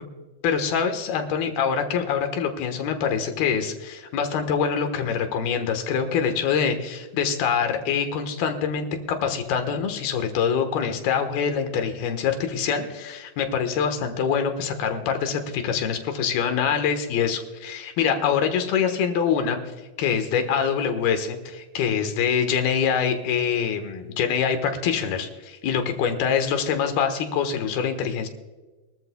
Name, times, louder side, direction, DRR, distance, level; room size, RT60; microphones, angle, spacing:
voice 1, 0.4-19.6 20.0-28.3, left 7 dB, 80° left, 6 dB, 3.2 m, -25 dB
23.0 x 14.0 x 2.2 m, 1.2 s
omnidirectional pair, 4.3 m